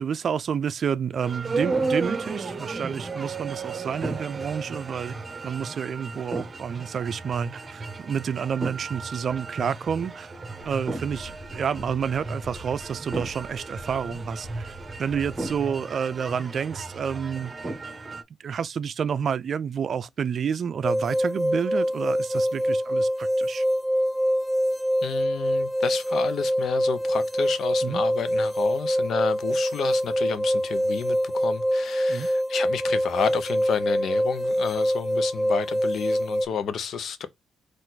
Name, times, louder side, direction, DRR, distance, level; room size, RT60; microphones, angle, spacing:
voice 1, 0.0-5.2 5.4-10.3 10.6-17.5 18.4-23.6 27.8-28.0 32.1-32.3, right 7 dB, 50° right, 0.4 m, -29 dB
sound 1, 1.2-18.2, right 3 dB, 25° right, 0.9 m, -34 dB
sound 2, 10.6-15.6, left 1 dB, 45° left, 1.1 m, -46 dB
sound 3, 20.8-36.5, equal, 5° left, 0.5 m, -25 dB
voice 2, 25.0-37.3, left 7 dB, 65° left, 0.7 m, -31 dB
4.4 x 2.5 x 4.0 m
cardioid pair, 90°, 0 cm